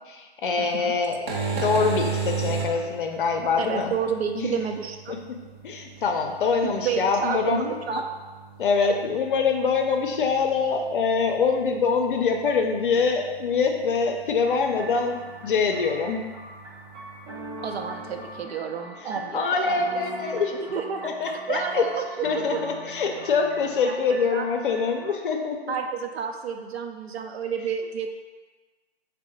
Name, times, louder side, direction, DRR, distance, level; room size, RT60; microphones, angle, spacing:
voice 1, 0.1-4.0 4.3-4.6 5.1-5.4 5.6-7.7 8.6-16.3 19.3-20.6 21.0-21.9 22.2-25.7, left 5 dB, 55° left, 3 dB, 0.5 m, -24 dB
voice 2, 0.6-0.9 3.6-5.2 6.6-8.0 8.8-8.9 17.6-19.8 20.5-22.6 23.8-24.0 24.3-24.5 25.7-28.1, right 7 dB, 75° right, 4 dB, 0.6 m, -30 dB
sound 1, 1.1-18.4, right 5 dB, 50° right, 0.8 m, -37 dB
sound 2, 14.5-25.1, right 1 dB, 20° right, 0.5 m, -41 dB
3.6 x 2.1 x 4.2 m, 1.3 s
hypercardioid pair, 150°, 32 cm